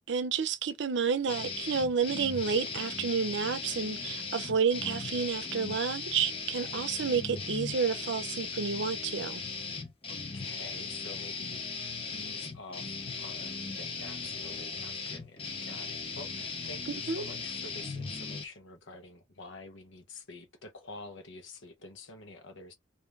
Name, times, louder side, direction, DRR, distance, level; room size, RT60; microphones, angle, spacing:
voice 1, 0.1-9.4 16.9-17.2, right 6 dB, 65° right, 0.6 m, -30 dB
sound 1, 1.3-18.4, left 4 dB, 30° left, 0.8 m, -38 dB
voice 2, 10.1-11.6 12.1-22.7, left 3 dB, 75° left, 0.9 m, -48 dB
3.2 x 2.7 x 3.4 m
head